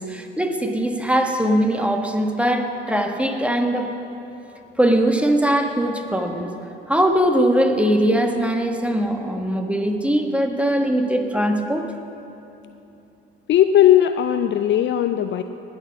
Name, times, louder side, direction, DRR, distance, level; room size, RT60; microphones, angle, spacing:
voice 1, 0.0-3.9 4.8-6.5 6.9-11.9, right 1 dB, 5° right, 4 dB, 1.3 m, -21 dB
voice 2, 13.5-15.4, left 11 dB, 40° left, 9 dB, 0.5 m, -17 dB
19.0 x 6.4 x 6.1 m, 2.9 s
hypercardioid pair, 65°, 29 cm